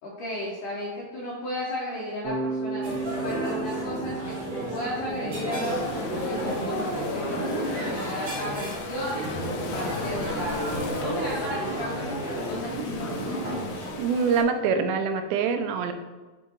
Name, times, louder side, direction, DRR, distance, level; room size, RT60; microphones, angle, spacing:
voice 1, 0.0-2.8 3.2-10.6 11.0-12.7, left 1 dB, 70° left, -5 dB, 2.0 m, -34 dB
Bass guitar, 2.2-6.3, right 3 dB, 65° right, 3.6 m, -34 dB
sound 1, 2.8-13.9, equal, 50° right, 2.6 m, -31 dB
Waves surf, 5.7-14.4, left 5 dB, 90° left, 2.0 m, -38 dB
voice 2, 13.9-15.9, right 5 dB, 85° right, 7 dB, 2.8 m, -24 dB
8.3 x 5.8 x 3.0 m, 1.2 s
omnidirectional pair, 5.0 m